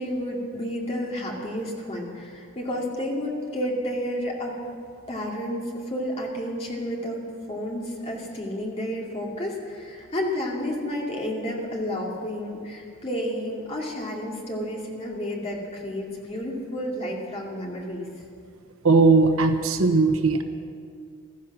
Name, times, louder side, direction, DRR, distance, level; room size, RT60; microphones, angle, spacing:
voice 1, 0.0-4.6 5.1-18.1, equal, 30° left, -2 dB, 2.4 m, -31 dB
voice 2, 18.8-20.4, right 3 dB, 70° right, 7 dB, 1.1 m, -18 dB
15.5 x 13.0 x 6.1 m, 2.2 s
head